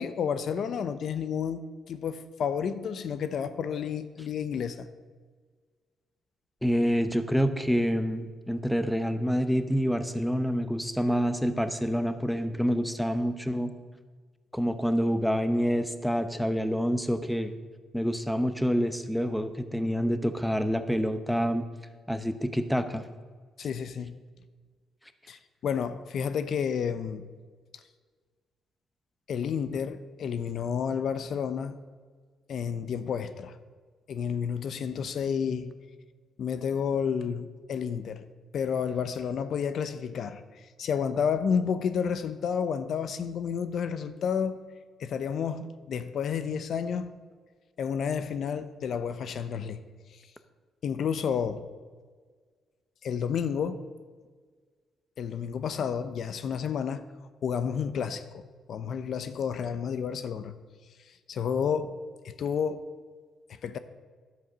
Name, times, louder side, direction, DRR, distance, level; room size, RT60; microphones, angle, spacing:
voice 1, 0.0-4.9 23.6-24.1 25.3-27.2 29.3-31.8 32.5-33.5 34.1-35.7 36.4-38.2 38.5-44.6 45.0-47.1 47.8-49.8 50.1-50.2 50.8-51.7 53.0-53.8 55.2-57.0 57.4-60.5 61.3-61.9 62.2-62.8 63.5-63.8, left 7 dB, 65° left, 0.6 m, -31 dB
voice 2, 6.6-13.7 14.5-17.5 17.9-21.6 22.1-23.0, equal, ahead, 0.8 m, -27 dB
11.0 x 7.7 x 6.1 m
cardioid pair, 90°, 0 cm